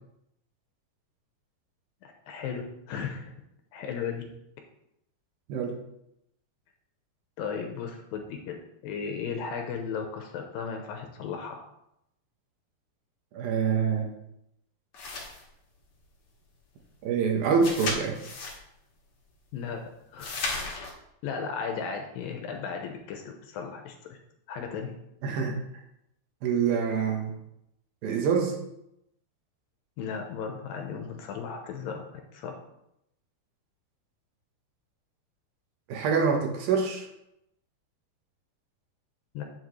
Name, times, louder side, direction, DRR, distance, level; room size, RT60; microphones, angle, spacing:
voice 1, 2.0-3.3 3.7-4.3 7.4-8.6 8.8-11.6 19.5-19.8 20.1-20.4 21.2-24.2 24.5-24.9 30.0-32.1 32.3-32.5 39.3-39.4, left 6 dB, 75° left, 3 dB, 2.3 m, -35 dB
voice 2, 13.3-14.1 17.0-18.2 25.2-25.6 26.4-27.3 28.0-28.5 35.9-37.1, right 6 dB, 70° right, 1 dB, 2.9 m, -25 dB
sound 1, 14.9-15.4 17.6-18.6 20.2-20.9, left 3 dB, 50° left, 1.8 m, -34 dB
9.8 x 7.2 x 3.2 m, 0.82 s
omnidirectional pair, 4.5 m